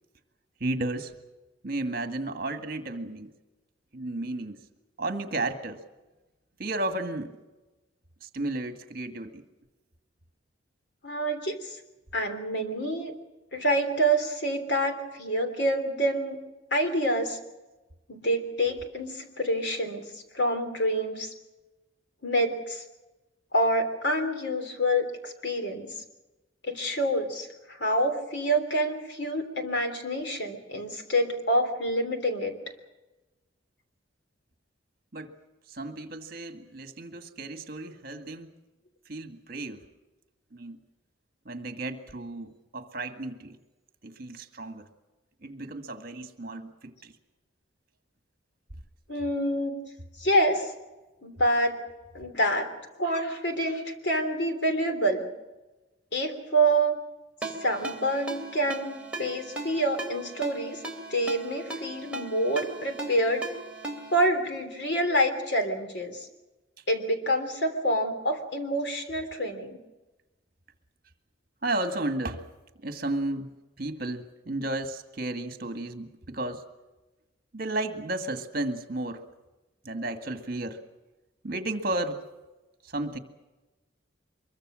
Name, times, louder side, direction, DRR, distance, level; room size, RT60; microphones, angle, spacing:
voice 1, 0.6-1.1 1.6-3.3 3.9-4.6 5.0-5.8 6.6-7.3 8.2-9.4 35.1-35.3 35.7-38.5 39.1-39.8 40.5-40.8 41.5-43.6 44.0-44.9 45.4-47.1 71.6-72.5 72.8-73.5 73.8-76.6 77.5-79.3 79.8-80.8 81.4-82.3 82.8-83.2, right 2 dB, 50° right, 7 dB, 1.9 m, -33 dB
voice 2, 11.0-11.8 12.1-13.1 13.5-16.4 16.7-17.4 18.1-21.3 22.2-22.8 23.5-26.0 26.6-32.6 49.1-49.8 50.2-50.7 51.2-51.8 52.1-52.7 53.0-55.3 56.1-57.0 57.6-60.8 61.1-63.4 64.1-66.3 66.9-69.8, right 1 dB, 60° left, 7 dB, 3.3 m, -27 dB
Ringtone, 57.4-64.3, right 2 dB, 5° right, 2.9 m, -38 dB
24.5 x 23.0 x 6.4 m, 1.1 s
head